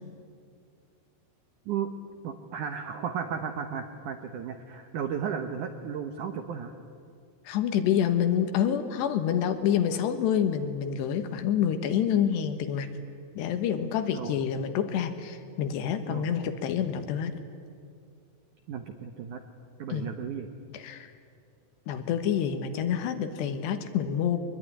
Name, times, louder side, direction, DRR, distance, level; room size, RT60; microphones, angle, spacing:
voice 1, 2.2-6.7 14.1-14.4 16.1-16.3 18.7-19.4 19.8-20.5, right 7 dB, 80° right, 7 dB, 1.8 m, -34 dB
voice 2, 7.5-12.9 13.4-17.3 19.9-20.1 20.7-21.1 21.9-24.4, left 9 dB, 75° left, 9 dB, 3.3 m, -27 dB
22.5 x 21.5 x 10.0 m, 2.3 s
omnidirectional pair, 5.3 m